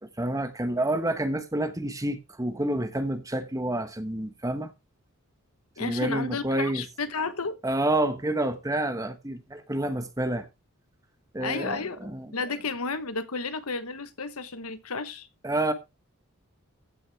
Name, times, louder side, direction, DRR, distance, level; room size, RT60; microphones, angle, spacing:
voice 1, 0.0-4.7 5.8-6.8 7.6-10.5 11.3-12.3 15.4-15.7, right 1 dB, 15° right, 1.1 m, -28 dB
voice 2, 5.8-7.6 11.4-15.3, left 4 dB, 90° left, 1.2 m, -32 dB
15.5 x 6.2 x 3.5 m
head